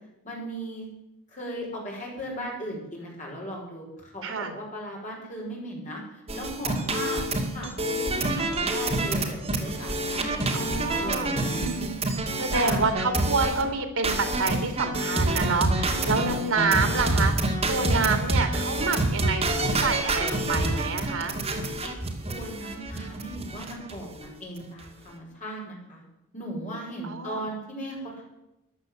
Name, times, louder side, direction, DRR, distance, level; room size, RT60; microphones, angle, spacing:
voice 1, 0.2-0.9 1.3-7.2 7.5-11.9 12.5-12.8 15.8-16.3 21.8-22.0 22.3-26.0 26.3-28.2, right 1 dB, 35° left, -2 dB, 5.8 m, -37 dB
voice 2, 4.2-4.5 10.5-11.3 12.4-17.3 17.7-21.4 27.0-27.4, right 4 dB, 80° right, 7 dB, 2.4 m, -28 dB
sound 1, 6.3-13.6 14.0-24.0 24.2-24.3 24.6-24.8, right 2 dB, 30° right, 2.2 m, -27 dB
14.5 x 11.0 x 7.3 m, 0.89 s
head